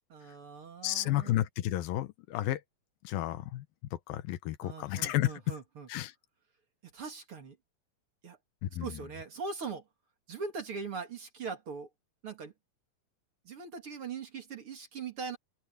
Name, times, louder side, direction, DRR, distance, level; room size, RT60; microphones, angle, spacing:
voice 1, 0.1-1.4 4.6-5.9 6.9-7.6 8.2-8.4 8.8-9.8 10.3-11.9 12.2-12.5 13.5-15.4, right 5 dB, 45° right, 2.6 m, -41 dB
voice 2, 0.8-2.6 3.0-3.7 3.9-5.3 5.9-6.1 8.6-9.0, left 14 dB, 90° left, 2.8 m, -32 dB
omnidirectional pair, 4.1 m